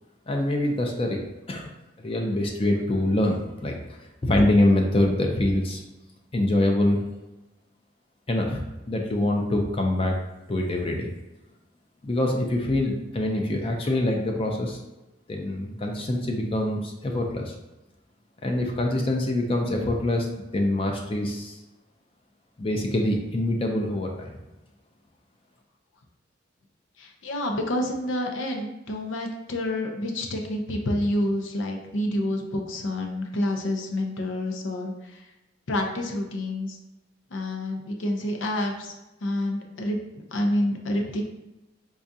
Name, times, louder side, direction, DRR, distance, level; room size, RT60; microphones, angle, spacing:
voice 1, 0.3-1.2 1.5-1.7 2.0-3.7 4.2-5.8 6.3-7.0 8.3-8.6 8.9-10.2 10.5-11.1 12.0-14.8 15.3-17.5 18.4-21.6 22.6-24.4, left 1 dB, 30° left, 2 dB, 0.4 m, -24 dB
voice 2, 27.0-35.2 35.7-36.8 37.3-38.9 39.2-40.0 40.3-41.2, left 1 dB, 80° left, 2 dB, 0.6 m, -28 dB
4.8 x 2.3 x 2.6 m, 0.98 s
head